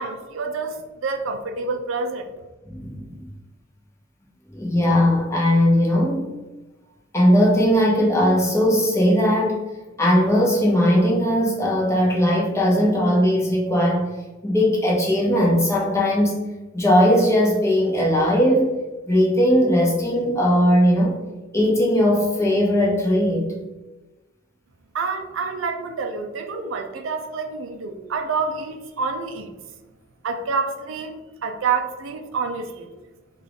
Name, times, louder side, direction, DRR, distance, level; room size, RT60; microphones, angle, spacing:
voice 1, 0.0-2.3 24.9-29.5 30.2-31.2 31.4-32.9, right 4 dB, 85° right, 5 dB, 0.4 m, -27 dB
voice 2, 2.7-3.3 4.5-6.2 7.1-9.6 10.0-14.1 14.4-16.4 16.7-18.7 19.1-21.2 21.5-23.5, equal, 15° left, -3 dB, 0.8 m, -19 dB
3.6 x 2.4 x 3.5 m, 1.2 s
head